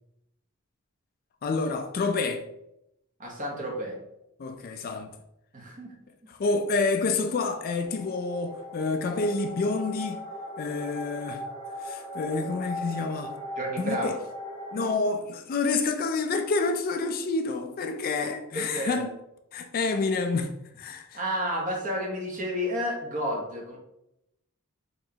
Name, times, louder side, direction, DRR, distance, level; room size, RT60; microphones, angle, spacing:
voice 1, 1.4-2.5 4.4-5.1 6.3-10.2 10.6-11.4 11.8-13.3 13.8-14.2 14.7-19.1 19.5-21.2, left 3 dB, 40° left, 0.3 m, -28 dB
voice 2, 3.2-4.0 5.5-6.0 6.2-6.3 13.6-14.2 18.5-19.1 21.1-23.8, equal, 35° right, 1.0 m, -31 dB
sound 1, 7.8-14.9, equal, 20° left, 0.9 m, -39 dB
4.6 x 3.1 x 2.8 m
head